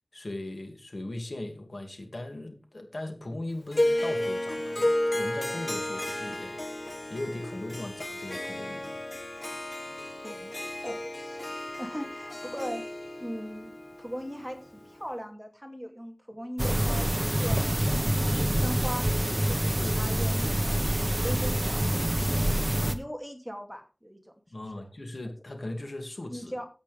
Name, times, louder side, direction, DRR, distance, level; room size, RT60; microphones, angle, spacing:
voice 1, 0.1-9.0 19.2-19.5 19.8-20.0 24.5-26.5, left 1 dB, 75° left, 4 dB, 2.4 m, -39 dB
Harp, 3.7-15.0, left 1 dB, 55° left, 1.6 m, -33 dB
voice 2, 10.2-10.6 10.8-11.5 11.8-12.8 13.2-13.7 14.0-18.1 18.4-19.1 19.5-19.6 19.9-20.9 21.2-24.2 24.5-24.9 26.3-26.7, equal, 5° right, 3 dB, 2.5 m, -39 dB
sound 1, 16.6-22.9, right 1 dB, 25° right, 1.2 m, -26 dB
13.0 x 8.6 x 3.4 m, 0.36 s
wide cardioid pair, 45°, 0 cm